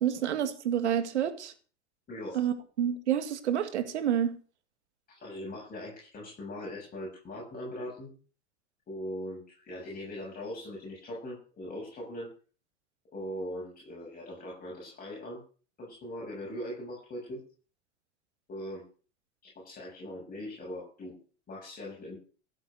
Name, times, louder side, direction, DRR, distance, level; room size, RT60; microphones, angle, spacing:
voice 1, 0.0-1.5 2.3-4.3, right 9 dB, 80° right, 9 dB, 2.2 m, -28 dB
voice 2, 2.1-2.4 5.1-8.1 8.9-12.3 13.1-15.4 15.8-17.4 18.5-18.8 19.4-21.2 21.5-22.2, left 1 dB, 25° left, -2 dB, 7.5 m, -40 dB
15.5 x 8.3 x 6.4 m, 0.40 s
hypercardioid pair, 100°, 34 cm